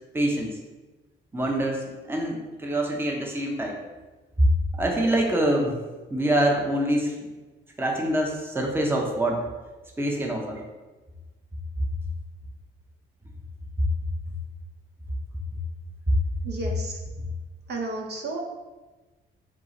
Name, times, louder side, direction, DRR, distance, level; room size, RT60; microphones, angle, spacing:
voice 1, 0.1-0.6 1.3-3.8 4.4-4.5 4.8-5.7 6.1-7.3 7.8-9.4 10.0-10.6 16.1-16.2, right 1 dB, 10° right, 0 dB, 0.7 m, -25 dB
voice 2, 16.4-17.0 17.7-18.4, right 2 dB, 55° right, 1 dB, 0.7 m, -32 dB
4.6 x 2.3 x 3.9 m, 1.2 s
cardioid pair, 90°, 20 cm